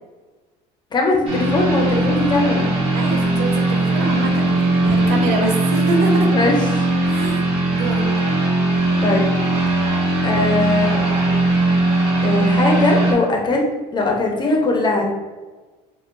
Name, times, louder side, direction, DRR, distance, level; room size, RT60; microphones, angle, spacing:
voice 1, 0.9-2.7 5.4-5.5 6.2-6.9 9.0-9.2 10.2-11.0 12.2-15.1, left 2 dB, 25° left, 0 dB, 0.9 m, -20 dB
sound 1, 1.3-13.1, right 2 dB, 35° right, 1.4 m, -19 dB
voice 2, 2.9-6.3 7.0-7.4 7.7-8.0, right 3 dB, 75° right, 2 dB, 1.0 m, -25 dB
6.8 x 2.4 x 2.5 m, 1.3 s
cardioid pair, 130°, 17 cm